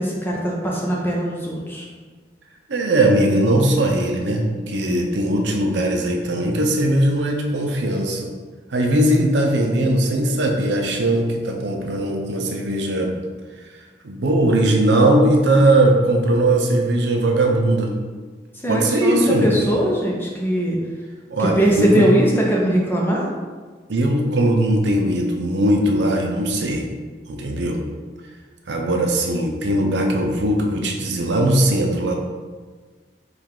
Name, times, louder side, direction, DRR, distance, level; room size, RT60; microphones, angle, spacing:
voice 1, 0.0-1.9 18.6-20.8 21.4-23.2, right 1 dB, 10° left, -3 dB, 0.6 m, -20 dB
voice 2, 2.7-8.3 8.7-13.2 14.0-18.0 18.7-19.7 21.3-22.1 23.9-26.9 27.3-27.8 28.7-32.1, right 1 dB, 75° right, 2 dB, 0.6 m, -19 dB
4.7 x 2.4 x 3.6 m, 1.4 s
head